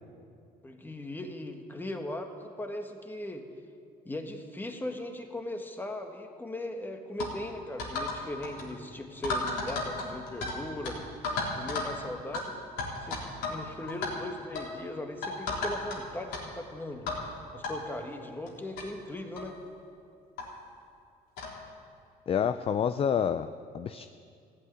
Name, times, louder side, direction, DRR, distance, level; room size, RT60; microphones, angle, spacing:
voice 1, 0.6-3.4 4.0-11.0 11.5-12.6 13.0-13.2 13.5-17.1 17.5-19.6, left 1 dB, 10° left, 4 dB, 1.6 m, -38 dB
sound 1, 7.2-7.3 7.8-8.2 8.4-8.7 9.2-10.6 10.8-10.9 11.2-11.9 12.3-12.4 12.8-13.6 13.9-14.1 14.6-14.7 15.2-16.0 16.3-16.4 17.1-17.2 17.6-17.7 18.5-18.6 18.8-18.9 19.4-19.5 20.4-20.5 21.4-21.6, left 3 dB, 90° left, 3.5 m, -33 dB
voice 2, 22.3-23.5 23.7-24.1, left 8 dB, 35° left, 11 dB, 0.4 m, -28 dB
15.0 x 8.6 x 9.8 m, 2.4 s
cardioid pair, 110°, 17 cm